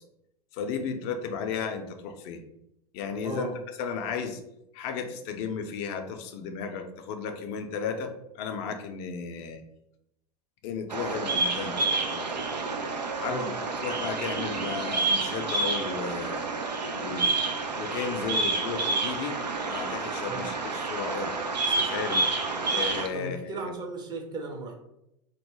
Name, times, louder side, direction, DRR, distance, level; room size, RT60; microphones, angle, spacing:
voice 1, 0.5-2.4 2.9-3.5 3.8-4.4 4.7-8.1 8.4-9.6 10.6-12.5 13.1-16.5 16.9-17.5 17.7-19.4 19.7-22.2 22.7-23.7, left 6 dB, 40° left, 5 dB, 0.4 m, -34 dB
voice 2, 3.2-3.5 13.3-13.5 20.3-20.4 23.1-24.7, right 3 dB, 20° right, 2 dB, 0.5 m, -36 dB
Bird vocalization bird call bird song, 10.9-23.1, right 3 dB, 85° right, 0.4 m, -29 dB
2.2 x 2.1 x 3.2 m, 0.83 s
figure-of-eight pair, 90°, 21 cm